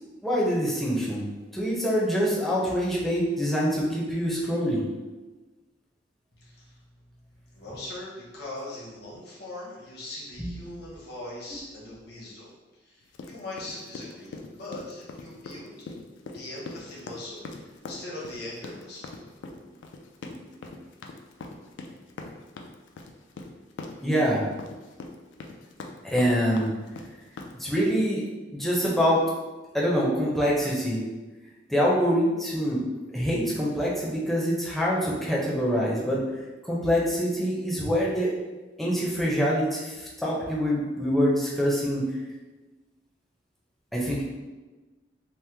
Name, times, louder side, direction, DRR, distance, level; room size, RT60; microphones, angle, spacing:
voice 1, 0.2-1.2 1.5-4.8 10.4-10.5 20.6-20.7 24.0-24.5 26.0-26.7 27.6-28.2 28.5-29.2 29.7-31.0 31.7-32.8 33.1-36.2 36.6-38.3 38.8-42.1 43.9-44.2, equal, ahead, -6 dB, 0.5 m, -25 dB
voice 2, 6.3-12.5 12.8-15.7 16.3-19.1, left 2 dB, 60° left, -5 dB, 0.8 m, -41 dB
sound 1, 13.1-28.0, left 3 dB, 75° left, 0.3 m, -41 dB
2.9 x 2.1 x 3.3 m, 1.2 s
head